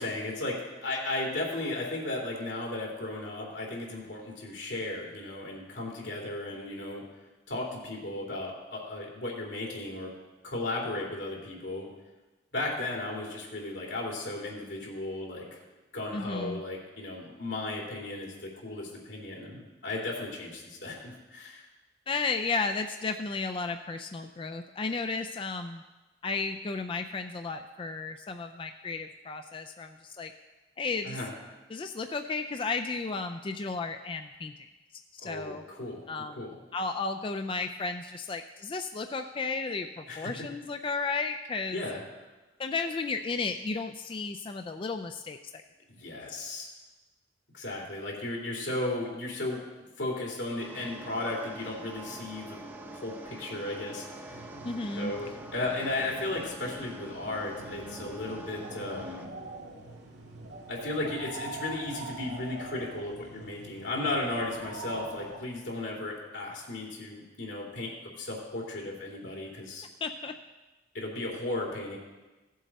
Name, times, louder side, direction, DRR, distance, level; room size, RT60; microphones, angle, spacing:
voice 1, 0.0-7.0 7.5-10.1 10.4-11.9 12.5-15.5 15.9-21.6 31.0-31.3 35.2-36.0 36.3-36.5 40.1-40.3 41.7-42.0 45.9-46.7 47.5-49.6 50.0-52.6 52.9-54.4 54.9-59.3 60.7-69.9 70.9-72.0, left 2 dB, 85° left, -2 dB, 2.8 m, -35 dB
voice 2, 16.1-16.6 22.1-25.8 26.2-30.3 30.8-31.2 31.7-34.5 35.1-35.6 36.1-36.4 36.7-41.8 42.6-45.4 54.6-55.1 70.0-70.3, left 4 dB, 30° left, 6 dB, 0.4 m, -33 dB
sound 1, 50.6-59.3, right 1 dB, 10° right, 0.7 m, -45 dB
sound 2, 54.2-65.4, right 2 dB, 80° right, 2.0 m, -44 dB
15.5 x 7.5 x 4.1 m, 1.2 s
head